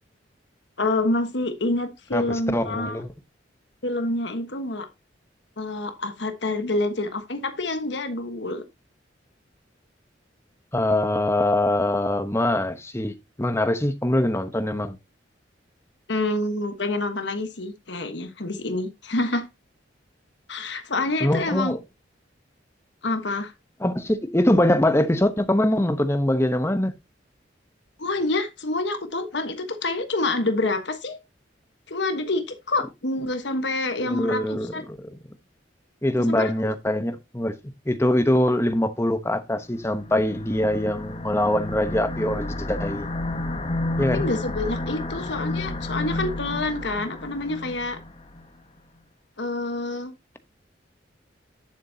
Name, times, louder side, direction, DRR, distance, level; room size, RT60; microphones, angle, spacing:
voice 1, 0.8-3.0 3.8-4.9 5.6-8.6 16.1-19.5 20.5-21.7 23.0-23.5 28.0-31.2 31.9-34.8 36.1-36.7 44.1-48.0 49.4-50.1, left 2 dB, 70° left, 1.3 m, -27 dB
voice 2, 2.1-3.1 10.7-13.1 13.4-15.0 21.2-21.8 23.8-26.9 34.1-35.0 36.0-37.5 37.9-43.1 44.0-44.3, left 1 dB, 15° left, 0.9 m, -23 dB
sound 1, 39.8-48.5, left 2 dB, 30° left, 1.4 m, -31 dB
11.0 x 7.2 x 2.8 m
head